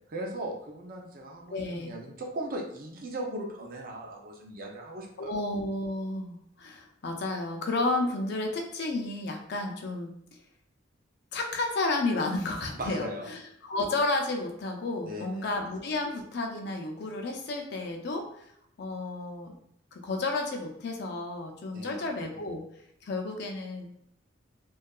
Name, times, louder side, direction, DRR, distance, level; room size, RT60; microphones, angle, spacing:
voice 1, 0.1-5.3 12.7-13.3 15.0-15.5 21.7-22.4, right 1 dB, 45° right, 0 dB, 0.5 m, -38 dB
voice 2, 1.5-1.9 5.2-10.1 11.3-18.5 18.8-19.5 19.9-22.6 23.0-24.1, left 2 dB, 55° left, 2 dB, 0.5 m, -32 dB
2.7 x 2.3 x 2.2 m, 0.72 s
head